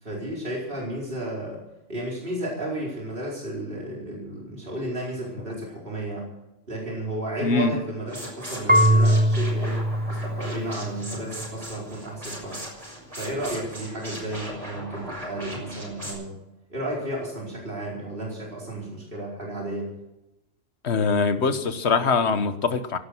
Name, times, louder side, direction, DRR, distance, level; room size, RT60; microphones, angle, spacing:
voice 1, 0.0-1.6 1.9-6.2 6.7-9.8 10.1-12.6 13.2-16.3 16.7-19.9, right 1 dB, 45° right, -3 dB, 4.8 m, -33 dB
voice 2, 7.4-7.8 20.8-23.0, left 4 dB, 60° left, 10 dB, 1.5 m, -23 dB
sound 1, 8.1-16.1, equal, 25° right, 6.3 m, -38 dB
Marimba xylophone / Wood, 8.7-11.5, equal, 10° right, 0.5 m, -22 dB
17.0 x 12.0 x 6.2 m, 0.93 s
omnidirectional pair, 1.3 m